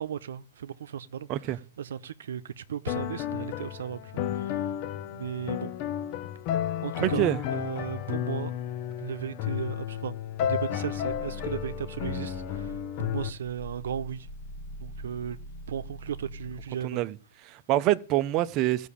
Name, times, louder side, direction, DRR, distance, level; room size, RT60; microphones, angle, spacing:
voice 1, 0.0-1.3 1.8-4.6 5.1-5.7 6.8-7.3 7.5-8.5 9.0-10.1 10.4-12.7 13.0-14.3 14.8-15.4 15.7-17.0, right 8 dB, 80° right, 0.8 m, -36 dB
sound 1, 2.9-13.3, left 10 dB, 45° left, 1.0 m, -32 dB
voice 2, 7.0-7.4 16.8-17.2 17.5-18.9, right 15 dB, 35° right, 0.7 m, -26 dB
Growling, 10.9-16.8, right 1 dB, 60° left, 2.2 m, -43 dB
15.0 x 6.2 x 8.5 m
hypercardioid pair, 135°, 0 cm